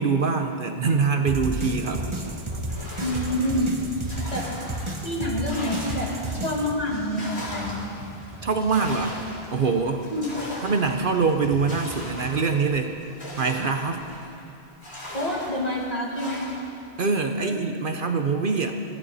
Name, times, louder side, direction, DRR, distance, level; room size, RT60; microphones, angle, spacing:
voice 1, 0.0-2.1 8.4-9.2 9.5-10.0 10.6-13.0 13.4-14.1 17.0-18.7, right 4 dB, 55° right, 5 dB, 1.0 m, -24 dB
sound 1, 1.3-6.7, right 1 dB, 30° right, 1.2 m, -32 dB
sound 2, 2.7-6.5 6.9-14.4 14.8-16.8, left 1 dB, 80° left, 3.9 m, -39 dB
voice 2, 3.0-3.7 4.3-4.5 5.0-7.9 10.1-10.3 15.1-16.5 17.4-17.6 17.8-18.0, left 1 dB, 40° left, -2 dB, 2.3 m, -27 dB
sound 3, 5.6-12.3, equal, 75° right, 3.5 m, -44 dB
19.5 x 14.5 x 4.2 m, 2.8 s
omnidirectional pair, 1.1 m